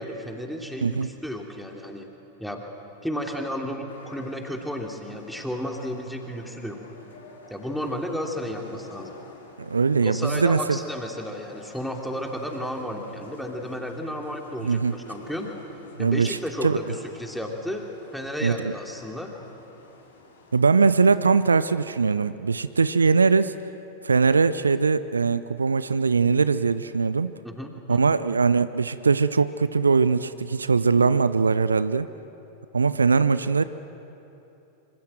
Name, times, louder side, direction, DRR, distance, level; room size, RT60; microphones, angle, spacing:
voice 1, 0.0-2.1 2.4-2.6 3.0-6.8 7.5-9.1 10.0-15.5 16.0-17.8 18.1-19.3 27.4-28.1, equal, ahead, 2 dB, 3.1 m, -33 dB
sound 1, 3.9-22.1, left 3 dB, 70° left, 4.1 m, -48 dB
voice 2, 9.6-10.8 14.6-15.0 16.0-16.8 18.4-18.7 20.5-23.5 24.0-27.3 27.9-32.1 32.7-33.6, right 4 dB, 75° right, 15 dB, 0.6 m, -21 dB
26.0 x 25.5 x 7.7 m, 2.9 s
figure-of-eight pair, 90°, 0 cm